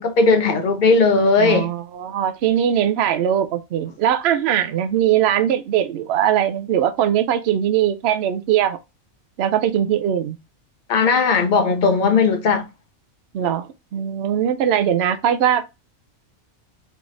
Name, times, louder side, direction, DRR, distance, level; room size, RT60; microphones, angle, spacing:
voice 1, 0.0-1.7 10.9-12.7, left 4 dB, 70° left, 0.4 m, -17 dB
voice 2, 1.4-8.8 9.4-10.4 11.7-11.8 13.3-15.6, right 10 dB, 60° right, 0.7 m, -20 dB
3.5 x 3.2 x 3.8 m
omnidirectional pair, 1.4 m